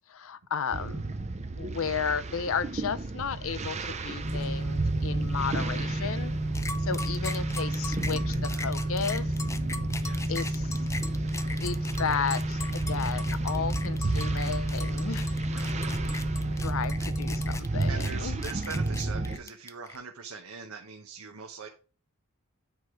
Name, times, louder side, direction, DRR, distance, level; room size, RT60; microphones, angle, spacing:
voice 1, 0.1-1.0 1.6-6.3 6.8-9.3 10.3-10.8 11.6-15.3 16.6-18.4, left 6 dB, 65° left, 0.6 m, -33 dB
sound 1, 0.7-19.4, right 2 dB, 30° right, 0.7 m, -34 dB
sound 2, 4.2-17.6, right 1 dB, 55° right, 1.7 m, -31 dB
sound 3, 6.5-20.0, left 3 dB, 15° left, 0.6 m, -40 dB
voice 2, 8.2-8.7 10.0-10.6 15.5-16.0 16.5-16.6 17.0-17.1 17.9-21.7, right 5 dB, 75° right, 1.0 m, -42 dB
9.0 x 4.7 x 4.9 m
head